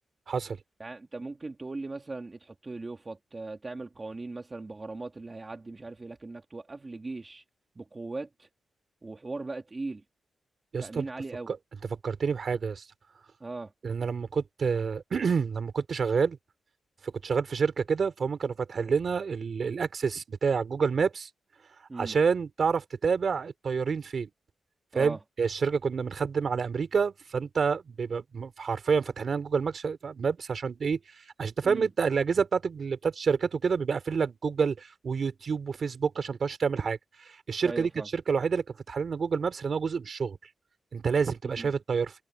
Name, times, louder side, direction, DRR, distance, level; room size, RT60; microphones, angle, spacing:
voice 1, 0.3-0.6 10.7-11.1 11.5-11.6 11.9-12.8 13.8-16.4 17.0-21.3 21.9-24.3 24.9-31.0 31.4-40.4 40.9-42.1, right 5 dB, 45° right, 3.3 m, -28 dB
voice 2, 0.8-7.4 7.7-8.5 9.0-10.0 10.8-11.5 13.4-13.7 21.9-22.2 24.9-25.2 31.6-31.9 37.6-38.1 41.6-41.7, right 3 dB, 25° right, 1.6 m, -39 dB
wide cardioid pair, 140°, 0 cm